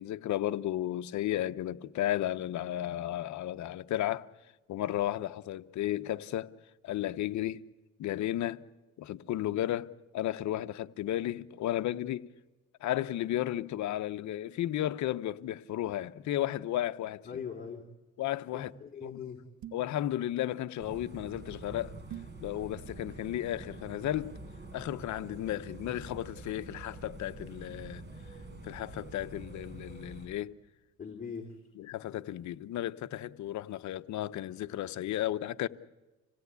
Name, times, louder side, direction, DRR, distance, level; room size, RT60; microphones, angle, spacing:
voice 1, 0.0-4.3 4.7-6.5 6.8-7.6 8.0-8.6 9.0-12.3 12.8-17.2 18.2-18.7 19.0-19.2 19.7-21.9 22.4-24.4 24.7-28.0 28.6-30.6 31.8-35.7, left 13 dB, 65° left, 0.9 m, -34 dB
voice 2, 17.2-17.8 18.5-19.4 31.0-31.6, left 6 dB, 30° left, 2.9 m, -40 dB
sound 1, 19.6-20.0 22.1-22.4, right 12 dB, 60° right, 1.2 m, -44 dB
sound 2, 20.8-30.3, right 2 dB, 35° right, 5.0 m, -46 dB
26.5 x 17.5 x 8.3 m
cardioid pair, 100°, 31 cm